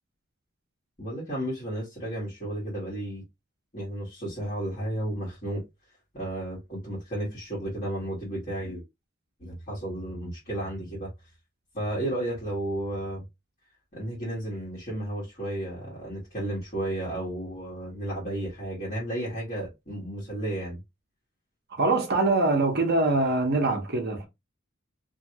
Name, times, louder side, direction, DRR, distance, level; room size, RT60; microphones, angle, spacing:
voice 1, 1.0-3.2 3.7-5.6 6.1-8.8 9.4-11.1 11.7-13.2 13.9-20.8, right 1 dB, 40° left, 1.5 m, -33 dB
voice 2, 21.7-24.3, right 2 dB, 50° right, 1.0 m, -24 dB
2.8 x 2.5 x 2.8 m
head